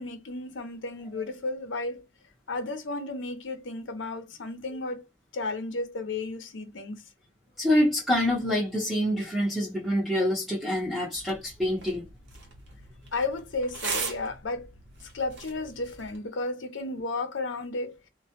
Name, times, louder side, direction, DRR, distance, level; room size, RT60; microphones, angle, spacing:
voice 1, 0.0-2.0 2.5-5.1 5.3-7.0 13.1-14.7 15.0-18.1, left 3 dB, 70° left, 0.6 m, -33 dB
voice 2, 7.6-12.1, equal, ahead, 0.6 m, -26 dB
sound 1, 11.1-16.2, right 4 dB, 65° right, 0.8 m, -39 dB
2.2 x 2.0 x 2.7 m
head